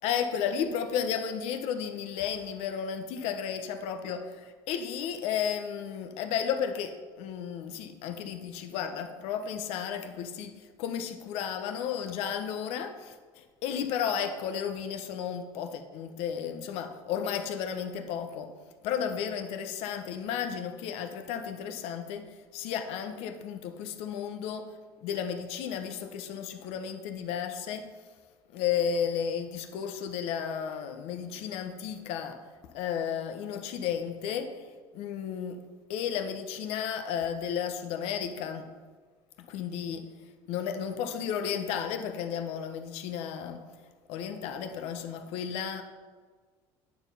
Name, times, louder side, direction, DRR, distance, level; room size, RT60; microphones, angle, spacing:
voice 1, 0.0-18.5 18.8-24.7 25.0-27.9 28.5-34.7 34.9-35.6 35.9-38.7 39.5-40.1 40.5-43.7 44.1-45.8, left 8 dB, 75° left, 8 dB, 0.9 m, -33 dB
9.4 x 4.7 x 5.6 m, 1.5 s
cardioid pair, 120°, 11 cm